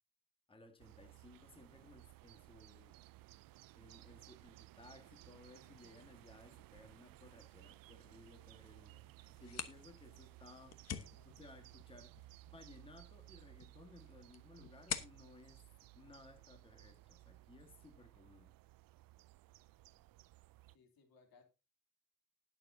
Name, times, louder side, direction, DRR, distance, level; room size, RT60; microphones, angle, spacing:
voice 1, 0.5-3.0 3.7-11.0 11.4-15.6 15.9-18.5, left 2 dB, 15° left, 1.6 m, -60 dB
sound 1, 0.8-20.8, right 18 dB, 70° right, 0.5 m, -59 dB
sound 2, 9.3-16.8, left 8 dB, 45° left, 1.1 m, -49 dB
voice 2, 11.0-11.4 20.7-21.4, left 4 dB, 80° left, 3.1 m, -67 dB
19.5 x 7.1 x 2.7 m
cardioid pair, 170°, 35 cm